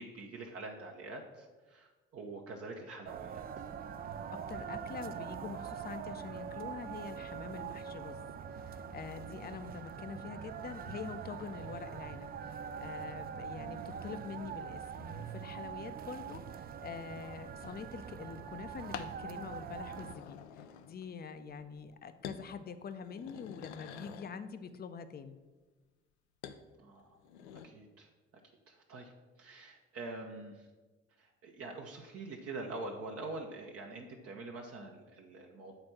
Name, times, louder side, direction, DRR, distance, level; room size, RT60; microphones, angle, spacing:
voice 1, 0.0-3.6 13.6-13.9 26.8-27.2 27.6-28.1 28.7-29.1 29.4-30.7 31.2-35.7, right 2 dB, 45° right, 1 dB, 0.9 m, -45 dB
sound 1, 3.0-20.1, right 8 dB, 30° right, 0.4 m, -43 dB
voice 2, 4.3-8.2 8.5-25.4, left 6 dB, 30° left, 10 dB, 0.6 m, -45 dB
sound 2, 17.6-17.9 18.9-19.2 19.7-21.2 21.5-21.9 22.2-22.5 22.9-24.4 26.4-26.6 27.1-27.7, left 8 dB, 75° left, 0.5 m, -47 dB
7.9 x 4.2 x 5.9 m, 1.3 s
figure-of-eight pair, 50°, 34 cm